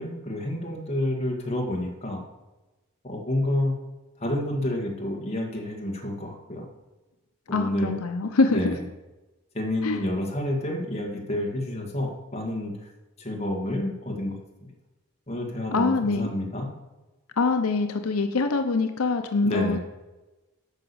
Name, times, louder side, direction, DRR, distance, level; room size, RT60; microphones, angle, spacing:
voice 1, 0.0-2.2 3.0-3.7 4.2-6.7 7.5-7.9 8.5-8.8 9.5-12.9 13.2-14.7 15.3-16.7 19.4-19.8, left 1 dB, 30° left, -1 dB, 2.0 m, -29 dB
voice 2, 7.5-8.7 9.8-10.0 15.7-16.3 17.4-19.8, left 3 dB, 90° left, 7 dB, 0.7 m, -24 dB
9.0 x 5.9 x 7.0 m, 1.1 s
head